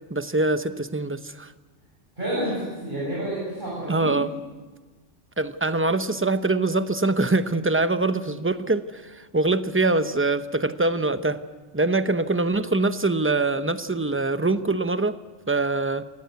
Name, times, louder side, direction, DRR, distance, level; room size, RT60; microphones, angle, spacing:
voice 1, 0.1-1.5 3.9-4.3 5.4-11.4 11.7-15.2 15.5-16.1, right 2 dB, 15° right, 11 dB, 0.7 m, -24 dB
voice 2, 2.2-4.2, right 1 dB, 40° right, -7 dB, 8.1 m, -29 dB
25.5 x 18.5 x 8.2 m, 1.3 s
omnidirectional pair, 1.3 m